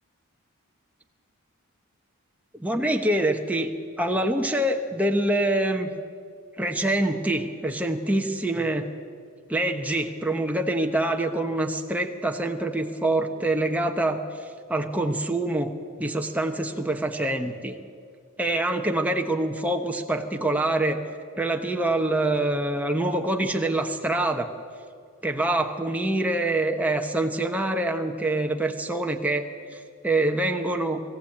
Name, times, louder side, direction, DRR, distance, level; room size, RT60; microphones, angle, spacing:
voice 1, 2.5-3.7 4.0-5.9 6.6-8.9 9.5-14.2 14.7-15.7 16.0-17.8 18.4-21.0 21.4-24.5 25.2-31.0, right 1 dB, 5° right, 3 dB, 1.0 m, -25 dB
21.0 x 15.0 x 8.6 m, 2.3 s
head